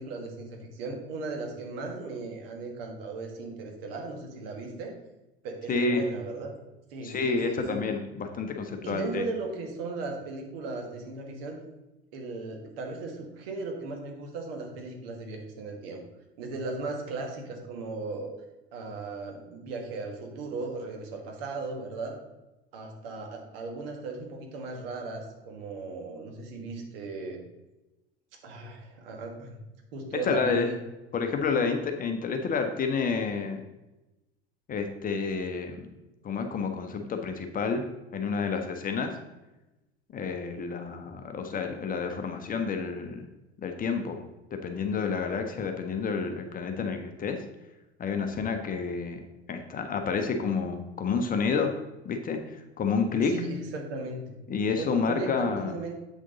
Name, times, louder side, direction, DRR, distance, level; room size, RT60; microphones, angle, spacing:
voice 1, 0.0-5.0 5.4-6.6 6.9-7.8 8.8-11.6 12.1-16.0 16.4-18.3 18.7-22.2 22.7-27.4 28.4-29.6 29.9-30.8 53.2-54.2 54.8-55.9, right 3 dB, 60° right, 2 dB, 1.7 m, -37 dB
voice 2, 5.7-6.0 7.0-9.2 30.2-30.7 31.1-33.6 34.7-35.9 36.2-37.8 38.1-39.2 40.1-43.3 43.6-44.2 44.5-47.4 48.0-51.7 52.0-53.3 54.5-55.7, left 5 dB, 25° left, 5 dB, 0.9 m, -29 dB
8.1 x 6.3 x 3.8 m, 1.0 s
figure-of-eight pair, 75°, 33 cm